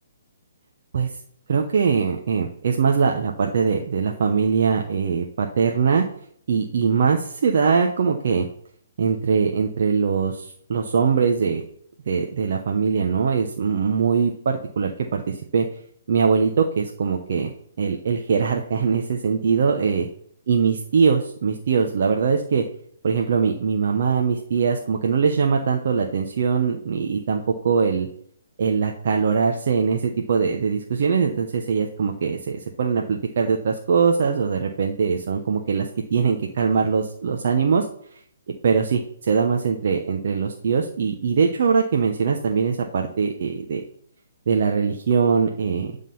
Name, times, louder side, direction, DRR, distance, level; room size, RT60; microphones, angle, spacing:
voice 1, 1.5-6.0 6.5-8.5 9.0-11.6 12.1-15.7 16.1-17.5 17.8-20.1 20.5-22.6 23.0-28.1 28.6-37.9 38.6-43.8 44.5-45.9, right 5 dB, 55° right, 2 dB, 1.0 m, -22 dB
11.0 x 3.9 x 5.5 m, 0.65 s
figure-of-eight pair, 135°, 0 cm